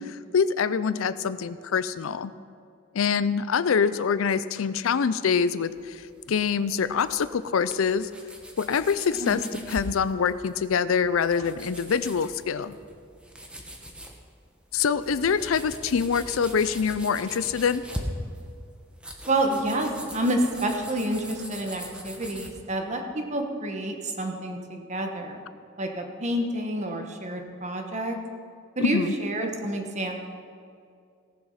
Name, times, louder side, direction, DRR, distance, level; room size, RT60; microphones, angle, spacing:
voice 1, 0.3-2.3 2.9-6.0 6.3-8.1 8.6-12.8 14.7-17.8 28.8-29.1, left 6 dB, 85° left, 15 dB, 0.5 m, -25 dB
sound 1, 5.7-22.6, equal, 5° right, 1.1 m, -42 dB
voice 2, 19.3-25.4 25.8-28.2 28.8-30.2, right 1 dB, 35° right, 4 dB, 1.2 m, -28 dB
17.5 x 7.2 x 5.7 m, 2.4 s
head